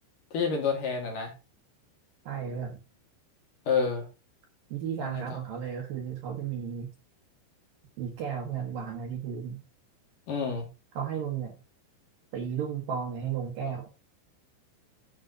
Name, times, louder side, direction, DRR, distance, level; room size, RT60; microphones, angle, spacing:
voice 1, 0.3-1.3 3.7-4.1 5.0-5.3 10.3-10.7, left 5 dB, 50° left, 1 dB, 3.3 m, -28 dB
voice 2, 2.3-2.8 4.7-6.9 8.0-9.6 10.9-11.5 12.3-13.9, right 7 dB, 65° right, 3 dB, 2.5 m, -34 dB
10.5 x 7.3 x 3.9 m, 0.28 s
omnidirectional pair, 5.4 m